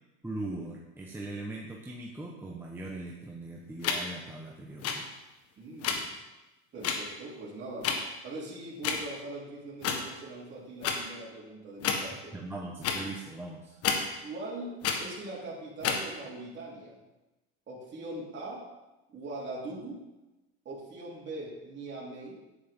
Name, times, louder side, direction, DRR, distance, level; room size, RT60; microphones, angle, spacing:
voice 1, 0.2-5.1 12.3-13.8, right 2 dB, 5° right, -2 dB, 1.2 m, -40 dB
sound 1, 3.8-4.0 4.8-4.9 5.8-6.0 6.8-7.0 7.8-7.9 8.8-9.0 9.8-10.0 10.8-11.0 11.8-12.0 12.8-13.0 13.8-14.0 14.8-15.0 15.8-16.0, left 7 dB, 45° left, 1.5 m, -28 dB
voice 2, 5.6-6.2 6.7-7.9 8.2-12.4 14.2-17.0 17.7-18.7 19.1-20.0 20.7-22.4, right 2 dB, 35° right, -6 dB, 3.7 m, -41 dB
9.8 x 9.6 x 3.8 m, 1.0 s
supercardioid pair, 105°, 33 cm